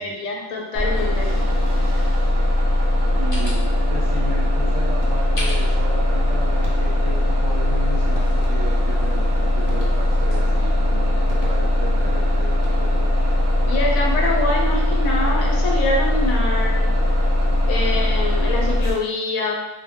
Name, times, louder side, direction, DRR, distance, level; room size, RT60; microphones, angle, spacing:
voice 1, 0.0-1.3 13.7-16.9 17.7-19.5, left 2 dB, 80° left, -1 dB, 1.1 m, -25 dB
Bus, 0.7-18.9, left 1 dB, 40° right, 0.3 m, -20 dB
sound 1, 2.8-10.4, left 1 dB, 35° left, 0.5 m, -40 dB
voice 2, 3.1-13.1, right 2 dB, 70° right, -2 dB, 0.8 m, -35 dB
sound 2, 5.0-5.6 6.6-7.2 8.1-9.0 9.6-10.4 11.3-12.0 12.5-13.2, left 1 dB, 60° left, 0.8 m, -42 dB
2.3 x 2.1 x 3.4 m, 0.99 s
omnidirectional pair, 1.4 m